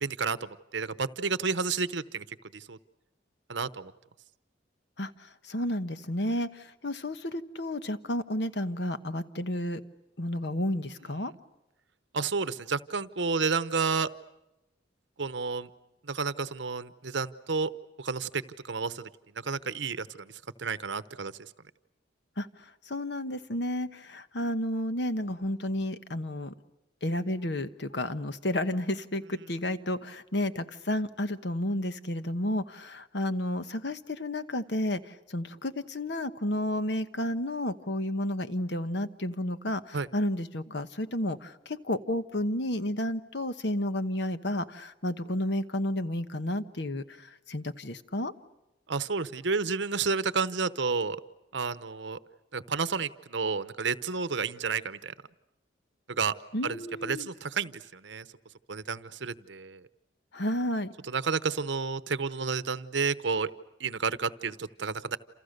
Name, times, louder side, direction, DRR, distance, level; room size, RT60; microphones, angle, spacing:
voice 1, 0.0-2.2 2.5-2.8 3.5-3.9 12.1-14.1 15.2-15.7 16.0-17.7 18.0-19.1 19.4-20.3 20.6-21.3 39.9-40.1 48.9-51.2 51.5-52.2 52.5-55.1 56.1-56.3 56.6-58.3 58.7-59.8 61.1-63.5 63.8-65.2, right 5 dB, 70° right, 14 dB, 0.9 m, -31 dB
voice 2, 5.0-9.8 10.2-11.3 22.4-22.5 22.9-26.5 27.0-48.3 56.5-57.3 60.3-60.9, left 1 dB, 60° left, 11 dB, 1.2 m, -31 dB
28.5 x 28.5 x 6.7 m, 0.94 s
head